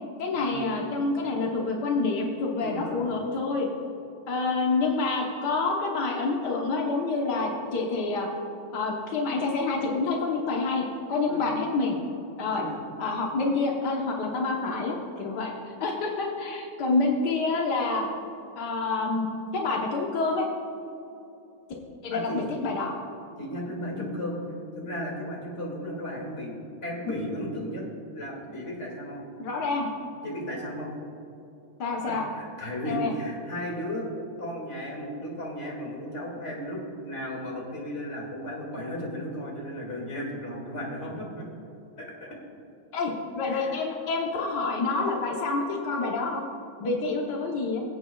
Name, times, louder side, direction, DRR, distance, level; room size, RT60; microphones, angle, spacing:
voice 1, 0.2-3.7 4.3-8.3 8.7-12.0 12.4-12.6 13.0-15.5 15.8-18.0 18.6-19.3 19.5-20.5 22.0-22.9 24.0-24.1 29.4-29.9 31.8-32.3 32.8-33.1 42.9-46.4 46.8-47.8, left 3 dB, 80° left, -1 dB, 0.9 m, -27 dB
voice 2, 2.6-3.1 11.3-11.4 12.4-12.8 22.1-22.4 23.4-24.4 24.8-27.8 28.1-29.2 30.2-30.9 32.0-34.1 34.4-41.4 42.0-42.4 43.5-43.8, equal, 25° left, -3 dB, 2.2 m, -35 dB
23.5 x 8.3 x 2.3 m, 2.7 s
omnidirectional pair, 3.3 m